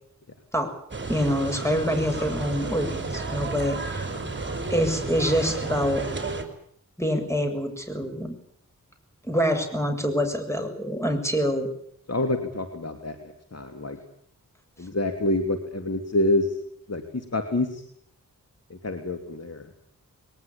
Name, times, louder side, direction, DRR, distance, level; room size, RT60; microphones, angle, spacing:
sound 1, 0.9-6.4, right 3 dB, 35° right, 5.4 m, -32 dB
voice 1, 1.1-4.1 4.7-6.0 7.0-8.4 9.3-11.7, equal, 10° left, 7 dB, 7.1 m, -26 dB
voice 2, 12.1-13.2 13.5-14.0 14.8-16.5 16.9-17.8 18.7-19.7, left 2 dB, 50° left, 6 dB, 3.1 m, -27 dB
22.0 x 20.0 x 8.7 m, 0.68 s
cardioid pair, 55°, 33 cm